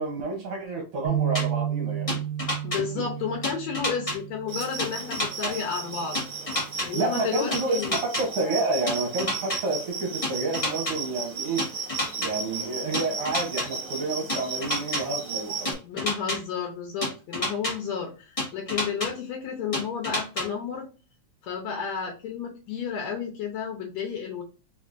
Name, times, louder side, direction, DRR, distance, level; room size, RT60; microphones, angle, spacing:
voice 1, 0.0-2.2 6.9-11.7 12.2-15.8, right 3 dB, 65° right, 1 dB, 1.6 m, -29 dB
sound 1, 1.0-5.3 5.8-6.0 6.9-7.3, right 10 dB, 85° right, 1.1 m, -32 dB
sound 2, 1.3-1.4 2.1-2.8 3.4-4.2 4.8-5.5 6.1-6.9 7.5-8.2 8.9-9.6 10.2-10.9 11.6-12.3 12.9-13.7 14.3-15.0 15.6-16.4 17.0-17.7 18.4-19.1 19.7-20.4, left 1 dB, 50° left, 0.4 m, -28 dB
voice 2, 2.6-6.2 6.8-8.0 15.8-20.9 21.4-24.4, left 6 dB, 75° left, 0 dB, 1.9 m, -32 dB
sound 3, 4.5-15.7, right 5 dB, 40° right, 1.7 m, -35 dB
4.4 x 3.5 x 2.5 m, 0.34 s
omnidirectional pair, 3.3 m